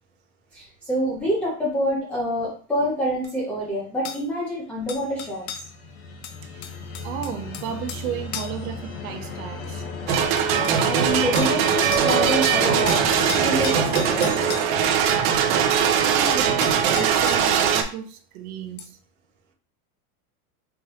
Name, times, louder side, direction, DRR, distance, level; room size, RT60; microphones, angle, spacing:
voice 1, 0.5-5.5 10.5-14.3, equal, 5° left, 0.3 m, -27 dB
sound 1, 3.2-3.3 4.0-4.2 4.9-5.7 6.2-8.1 8.3-8.6 9.6-9.7 10.1-10.8 11.4-11.6 11.9-12.1 12.4-14.7 16.2-16.3 16.6-17.5 18.8-18.9, left 8 dB, 90° left, 0.8 m, -35 dB
sound 2, 4.9-14.6, left 5 dB, 40° left, 1.3 m, -35 dB
voice 2, 7.0-9.8 15.5-19.0, right 8 dB, 70° right, 1.0 m, -34 dB
sound 3, 10.1-17.8, right 8 dB, 45° right, 0.6 m, -21 dB
4.5 x 3.1 x 2.9 m
supercardioid pair, 160°, 44 cm